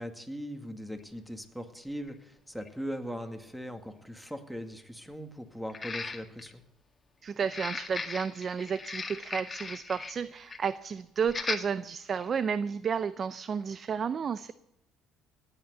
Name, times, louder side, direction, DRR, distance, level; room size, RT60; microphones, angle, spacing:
voice 1, 0.0-6.6, equal, ahead, 7 dB, 2.2 m, -40 dB
sound 1, 1.0-1.1 2.1-2.2 2.6-2.7 5.7-6.5 7.4-10.2 10.5-10.7 11.3-11.6 12.2-12.3, left 4 dB, 25° left, 2.0 m, -37 dB
voice 2, 7.2-14.5, right 6 dB, 45° right, 15 dB, 0.6 m, -32 dB
17.5 x 9.0 x 8.2 m, 0.86 s
supercardioid pair, 85°, 0 cm